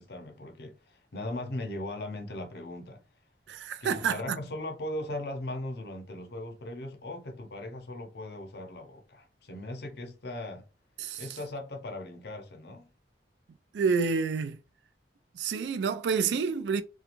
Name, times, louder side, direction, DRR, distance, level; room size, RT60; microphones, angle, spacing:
voice 1, 0.0-3.0 3.8-10.6 11.2-12.9, left 1 dB, 60° left, 0.6 m, -38 dB
voice 2, 3.5-4.4 11.0-11.4 13.7-14.6 15.3-16.8, right 5 dB, 75° right, 0.3 m, -29 dB
2.5 x 2.3 x 2.9 m
head